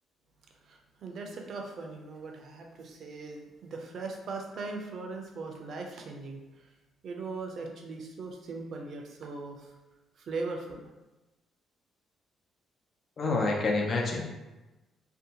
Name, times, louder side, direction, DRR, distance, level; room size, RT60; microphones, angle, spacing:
voice 1, 0.6-6.4 7.0-9.7 10.2-10.9, right 3 dB, 60° right, 2 dB, 0.5 m, -39 dB
voice 2, 13.2-14.3, left 3 dB, 50° left, 0 dB, 0.5 m, -27 dB
2.6 x 2.2 x 2.7 m, 1.1 s
supercardioid pair, 55°, 0 cm